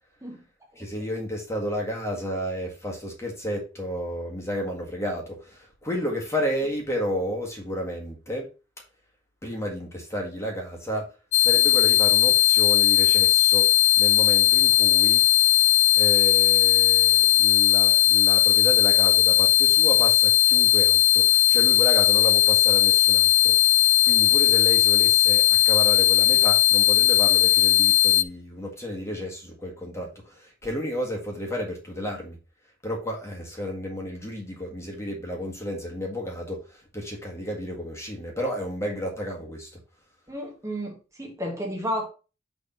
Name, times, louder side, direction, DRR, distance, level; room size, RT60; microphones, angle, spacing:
voice 1, 0.8-8.5 9.4-11.1 11.4-13.7 14.0-15.2 15.9-23.5 24.0-32.4 32.8-39.7, equal, 15° left, 0 dB, 1.7 m, -32 dB
sound 1, 11.3-28.2, left 15 dB, 85° left, 0.5 m, -18 dB
voice 2, 40.3-42.1, equal, 15° right, 1 dB, 1.5 m, -32 dB
6.7 x 3.6 x 5.2 m, 0.32 s
head